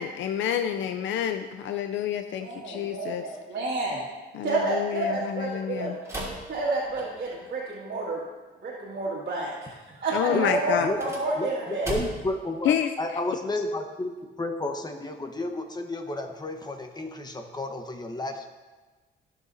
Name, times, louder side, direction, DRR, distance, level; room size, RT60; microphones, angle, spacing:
voice 1, 0.0-3.2 4.3-5.9 10.1-10.9 12.6-12.9, left 9 dB, 70° left, 7 dB, 0.5 m, -28 dB
voice 2, 2.3-4.0 4.4-6.0 6.5-8.2 8.6-11.9, right 2 dB, 50° right, -7 dB, 2.2 m, -30 dB
sound 1, 6.0-7.4 10.8-12.4, right 1 dB, 15° right, 2.9 m, -37 dB
voice 3, 11.4-18.6, left 2 dB, 20° left, 5 dB, 1.2 m, -32 dB
16.0 x 6.7 x 2.7 m, 1.3 s
cardioid pair, 90°, 20 cm